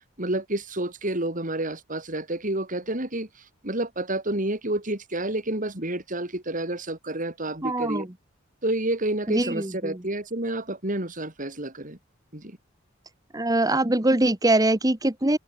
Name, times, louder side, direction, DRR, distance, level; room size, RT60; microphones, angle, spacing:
voice 1, 0.2-8.1 8.6-12.0 12.3-12.6, right 1 dB, 40° right, 4.6 m, -29 dB
voice 2, 7.6-8.1 9.3-10.0 13.3-15.4, right 1 dB, 20° right, 1.4 m, -23 dB
open air
head